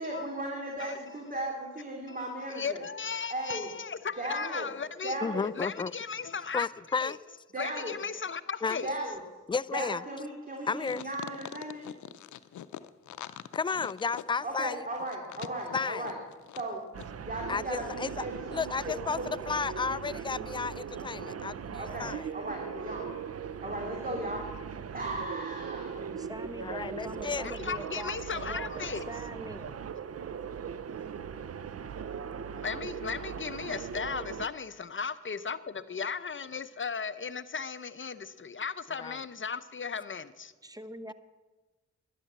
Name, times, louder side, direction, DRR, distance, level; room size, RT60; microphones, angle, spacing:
voice 1, 0.0-2.8 3.3-3.7 4.2-4.6 5.0-5.5 7.5-8.0 8.8-9.2 9.7-11.8 14.4-16.2 16.6-16.8 17.2-19.5 21.8-23.2 23.6-24.4 24.9-26.1, right 1 dB, 30° right, 0 dB, 2.8 m, -36 dB
voice 2, 2.5-6.7 7.0-7.2 7.6-8.9 27.4-29.1 32.6-40.5, left 5 dB, 45° left, 14 dB, 0.7 m, -36 dB
voice 3, 5.2-5.9 6.5-7.2 8.6-8.8 9.5-10.0 10.7-11.0 13.5-14.8 15.7-16.0 17.5-18.2 18.5-19.2 19.5-22.3 26.6-27.6 39.0-39.2, left 5 dB, 15° left, 18 dB, 0.4 m, -32 dB
sound 1, 10.8-16.7 17.0-17.1, left 11 dB, 85° left, 0.6 m, -43 dB
sound 2, 16.9-34.5, right 7 dB, 55° right, 0.7 m, -39 dB
voice 4, 26.2-29.7 40.6-41.1, equal, 10° right, 11 dB, 1.1 m, -43 dB
12.5 x 10.0 x 7.4 m, 1.2 s
cardioid pair, 50°, 29 cm